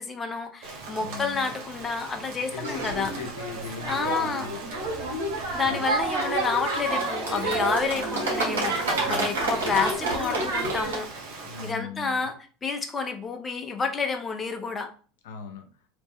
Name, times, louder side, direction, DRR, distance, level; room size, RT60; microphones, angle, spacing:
voice 1, 0.0-3.1 3.9-4.5 5.5-11.1 11.6-14.9, left 5 dB, 25° left, 5 dB, 0.8 m, -29 dB
Rain, 0.6-11.7, right 3 dB, 65° right, 1.3 m, -41 dB
voice 2, 1.0-1.5 2.5-4.6 5.6-5.8 8.9-9.4 11.4-12.3 15.2-15.7, left 5 dB, 75° left, 5 dB, 0.8 m, -38 dB
sound 1, 2.6-11.0, right 2 dB, 80° right, 1.6 m, -29 dB
3.1 x 3.0 x 3.6 m, 0.39 s
hypercardioid pair, 85°, 0 cm